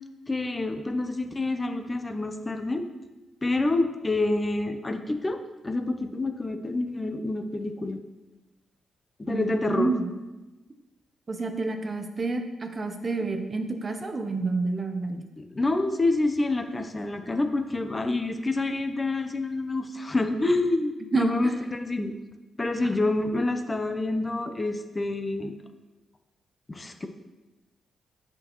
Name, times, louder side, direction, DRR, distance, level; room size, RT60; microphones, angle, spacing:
voice 1, 0.3-2.9 3.4-5.4 5.6-8.0 9.2-9.9 15.4-22.1 22.6-25.5 26.7-27.1, left 2 dB, 25° left, 7 dB, 0.6 m, -27 dB
voice 2, 9.3-10.1 11.3-15.2 21.1-21.5 22.8-23.1, right 3 dB, 40° right, 6 dB, 0.7 m, -29 dB
7.7 x 6.0 x 3.0 m, 1.1 s
cardioid pair, 70°, 0 cm